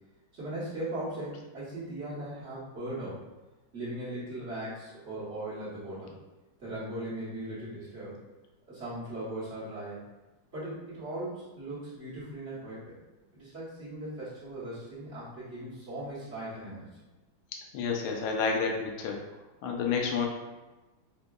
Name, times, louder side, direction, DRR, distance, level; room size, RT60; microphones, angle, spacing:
voice 1, 0.3-3.2 3.7-6.1 6.6-8.2 8.7-10.0 10.5-12.9 13.3-16.9, right 1 dB, 40° right, -11 dB, 1.2 m, -38 dB
voice 2, 17.7-19.2 19.6-20.3, left 5 dB, 70° left, 1 dB, 0.9 m, -29 dB
5.5 x 2.3 x 2.2 m, 1.1 s
omnidirectional pair, 2.2 m